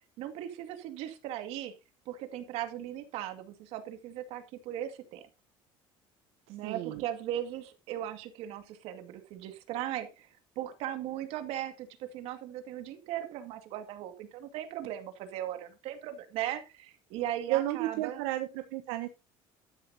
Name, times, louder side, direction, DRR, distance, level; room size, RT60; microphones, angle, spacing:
voice 1, 0.2-1.7 2.1-5.2 6.5-10.3 10.6-18.2, right 12 dB, 70° right, 8 dB, 2.2 m, -38 dB
voice 2, 6.6-7.0 17.5-19.1, right 15 dB, 90° right, 7 dB, 1.1 m, -32 dB
12.5 x 10.5 x 2.9 m, 0.27 s
cardioid pair, 135°, 11 cm